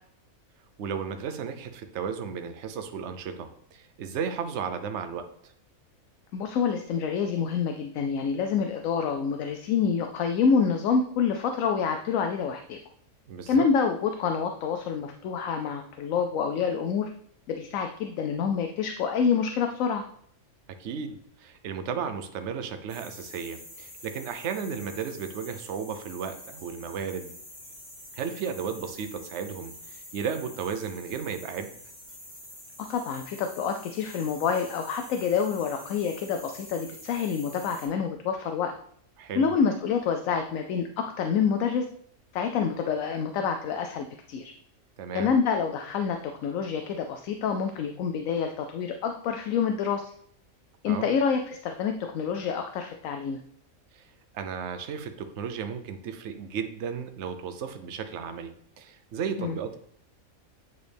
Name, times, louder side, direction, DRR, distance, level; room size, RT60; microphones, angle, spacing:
voice 1, 0.8-5.5 13.3-13.6 20.8-27.3 28.1-31.7 39.2-39.5 45.0-45.3 50.8-51.1 53.9-54.1 54.3-58.5 58.8-59.8, right 6 dB, 60° right, 7 dB, 0.9 m, -34 dB
voice 2, 6.3-12.8 13.5-17.1 17.5-20.0 32.8-38.7 39.3-41.9 42.3-44.5 45.1-50.0 50.8-53.4 59.4-59.6, left 6 dB, 75° left, 5 dB, 0.9 m, -27 dB
sound 1, 22.9-37.9, left 1 dB, 50° left, 3.0 m, -46 dB
8.6 x 4.1 x 3.4 m, 0.65 s
omnidirectional pair, 1.5 m